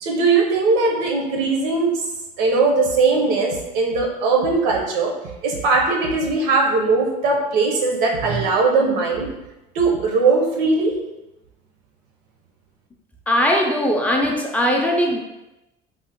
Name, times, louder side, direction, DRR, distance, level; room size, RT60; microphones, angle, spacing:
voice 1, 0.0-1.9 2.4-5.1 5.4-9.3 9.7-10.9, right 3 dB, 90° right, 1 dB, 0.7 m, -19 dB
voice 2, 13.3-15.2, equal, 10° left, 0 dB, 0.3 m, -19 dB
3.4 x 2.0 x 2.8 m, 0.97 s
cardioid pair, 130°, 17 cm